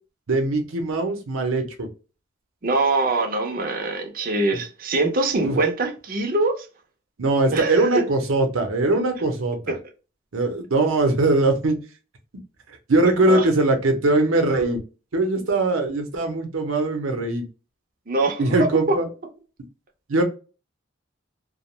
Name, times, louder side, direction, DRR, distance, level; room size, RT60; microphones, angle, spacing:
voice 1, 0.3-1.9 5.4-5.6 7.2-9.7 10.3-11.8 12.9-14.8 15.1-17.4 18.4-19.1 20.1-20.2, right 2 dB, 85° right, 0.7 m, -21 dB
voice 2, 2.6-6.7 7.5-8.0 9.7-9.8 13.3-13.5 18.1-19.0, right 2 dB, 45° right, 0.5 m, -23 dB
2.4 x 2.1 x 3.0 m
head